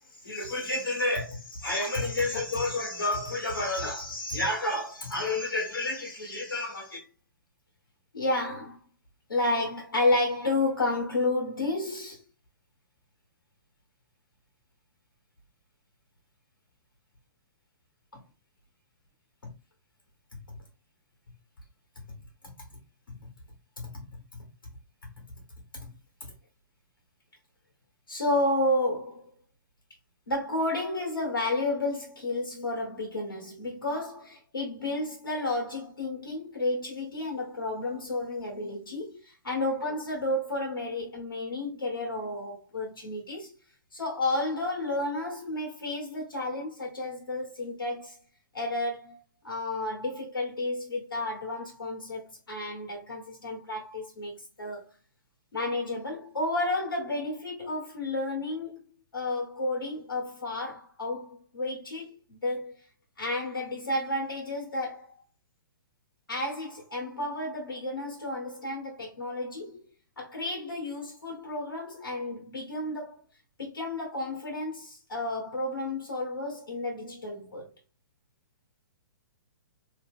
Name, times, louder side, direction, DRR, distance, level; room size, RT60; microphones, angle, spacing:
voice 1, 0.1-7.1 8.1-8.8 9.3-12.2 18.1-18.2 19.4-19.5 20.5-20.6 22.1-22.2 23.1-23.3 23.8-24.5 25.0-25.3 25.7-25.9 26.2-26.3 28.1-29.3 30.3-43.5 43.9-48.2 48.5-49.2 49.4-54.9 55.5-58.8 59.1-62.7 63.2-65.1 66.3-69.8 70.2-73.2 73.6-77.7, left 2 dB, 85° left, 1.2 m, -31 dB
2.8 x 2.2 x 3.5 m
figure-of-eight pair, 120°, 11 cm